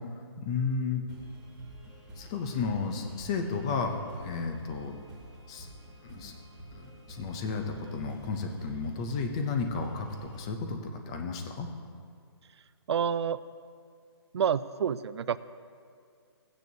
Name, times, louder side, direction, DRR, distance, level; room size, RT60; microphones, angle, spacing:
voice 1, 0.4-1.0 2.2-5.0 5.5-5.7 6.0-6.3 6.7-11.7, left 4 dB, 10° left, 5 dB, 0.4 m, -33 dB
sound 1, 1.1-10.4, right 1 dB, 5° right, 1.4 m, -49 dB
voice 2, 12.9-13.4 14.3-15.4, right 8 dB, 75° right, 15 dB, 0.4 m, -28 dB
15.0 x 9.2 x 2.7 m, 2.2 s
hypercardioid pair, 170°, 14 cm